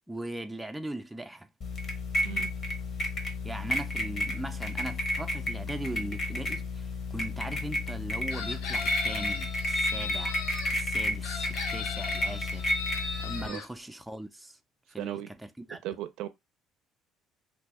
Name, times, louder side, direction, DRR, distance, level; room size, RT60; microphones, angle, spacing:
voice 1, 0.1-1.5 3.4-10.4 10.7-12.7 13.2-14.6 14.9-15.8, right 1 dB, 5° right, 0.4 m, -39 dB
sound 1, 1.6-13.5, left 1 dB, 45° left, 1.0 m, -32 dB
Chicken rooster, 8.3-10.7 11.2-13.7, left 5 dB, 80° left, 0.7 m, -37 dB
voice 2, 15.0-15.3 15.8-16.3, right 13 dB, 75° right, 0.4 m, -36 dB
2.7 x 2.2 x 4.0 m
supercardioid pair, 95°, 0 cm